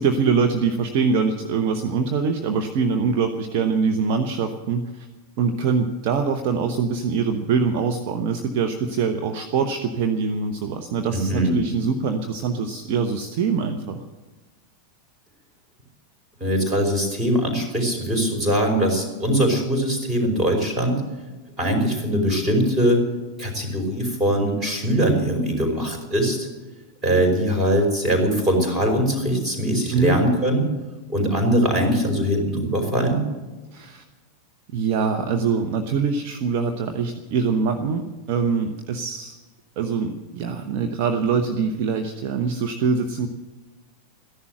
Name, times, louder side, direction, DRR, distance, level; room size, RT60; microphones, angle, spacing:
voice 1, 0.0-5.1 5.4-14.0 29.9-30.2 33.7-34.0 34.7-39.4 39.8-43.3, right 5 dB, 45° right, 5 dB, 1.1 m, -23 dB
voice 2, 11.1-11.6 16.4-21.0 21.6-23.0 23.4-26.5 27.0-30.6 31.1-33.2, equal, 20° right, 2 dB, 5.1 m, -21 dB
14.5 x 11.0 x 7.8 m, 1.2 s
figure-of-eight pair, 90°, 0 cm